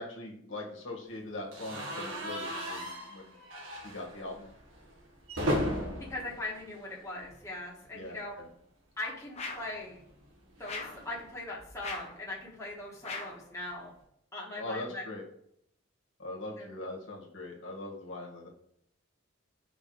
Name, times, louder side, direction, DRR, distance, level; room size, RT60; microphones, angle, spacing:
voice 1, 0.0-3.3 3.8-4.5 7.9-8.5 14.6-15.2 16.2-18.5, left 2 dB, 65° left, -1 dB, 1.7 m, -41 dB
sound 1, 1.5-7.6 7.9-8.1 8.3-8.4 9.7-12.0, equal, 75° right, 1.6 m, -37 dB
voice 2, 6.1-8.3 9.0-10.0 10.6-13.9 14.3-15.0 16.6-16.7, left 2 dB, 15° left, -4 dB, 1.5 m, -40 dB
sound 2, 9.3-9.8 10.6-11.1 11.8-12.2 13.0-13.4, left 3 dB, 30° left, 1.1 m, -40 dB
5.2 x 4.5 x 4.9 m, 0.72 s
head